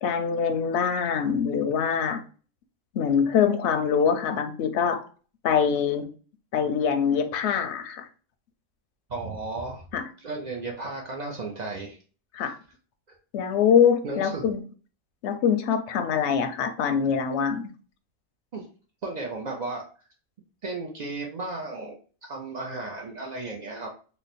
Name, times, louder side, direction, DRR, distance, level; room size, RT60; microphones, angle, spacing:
voice 1, 0.0-2.2 2.9-5.0 5.4-6.1 6.5-8.1 9.9-10.0 12.3-12.6 13.3-14.6 15.2-17.6, left 7 dB, 65° left, 8 dB, 0.7 m, -24 dB
voice 2, 9.1-9.8 10.2-12.0 12.4-12.5 14.0-14.5 18.5-18.7 19.0-19.8 20.6-23.9, right 3 dB, 60° right, -1 dB, 0.4 m, -34 dB
3.1 x 2.1 x 4.0 m, 0.38 s
omnidirectional pair, 1.4 m